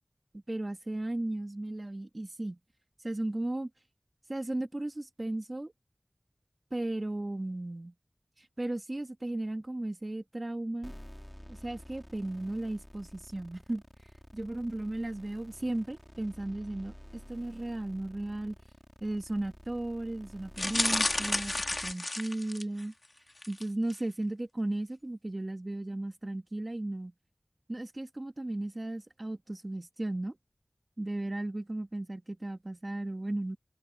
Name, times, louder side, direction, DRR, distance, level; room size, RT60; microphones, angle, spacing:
voice 1, 0.3-2.6 3.0-3.7 4.3-5.7 6.7-7.9 8.4-10.9 11.5-13.8 14.3-18.5 19.0-21.5 21.8-22.9 23.5-27.1 27.7-30.4 31.0-33.6, right 1 dB, 50° right, 1.7 m, -35 dB
sound 1, 10.8-21.9, equal, 10° left, 4.1 m, -50 dB
sound 2, 20.6-22.8 23.4-23.6 23.9-24.0, left 2 dB, 60° left, 2.2 m, -31 dB
open air
wide cardioid pair, 40°, 0 cm